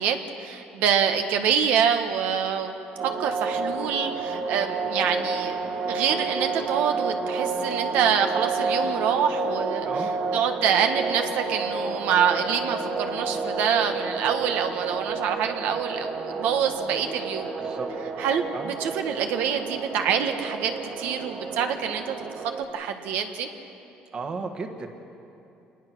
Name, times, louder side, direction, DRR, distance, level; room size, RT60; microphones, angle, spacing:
voice 1, 0.0-2.7 3.0-5.5 5.9-9.9 10.3-17.5 18.2-22.1 22.7-23.5, right 8 dB, 75° right, 6 dB, 1.3 m, -26 dB
sound 1, 3.0-22.6, right 4 dB, 50° right, 2.3 m, -30 dB
voice 2, 9.8-10.1 17.6-17.9 18.5-18.7 24.1-24.9, right 4 dB, 30° right, 6 dB, 1.4 m, -34 dB
27.0 x 20.0 x 6.1 m, 2.8 s
cardioid pair, 165°, 3 cm